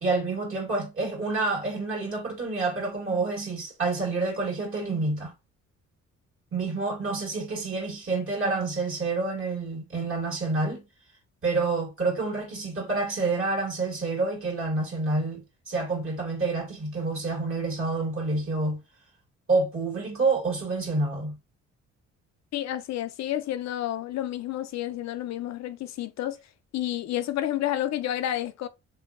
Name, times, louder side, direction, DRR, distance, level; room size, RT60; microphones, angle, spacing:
voice 1, 0.0-5.3 6.5-10.8 11.4-18.8 19.5-21.4, right 3 dB, 45° right, 1.5 m, -28 dB
voice 2, 22.5-26.4 26.7-28.7, left 12 dB, 65° left, 0.5 m, -30 dB
3.1 x 2.6 x 2.4 m
cardioid pair, 90°, 30 cm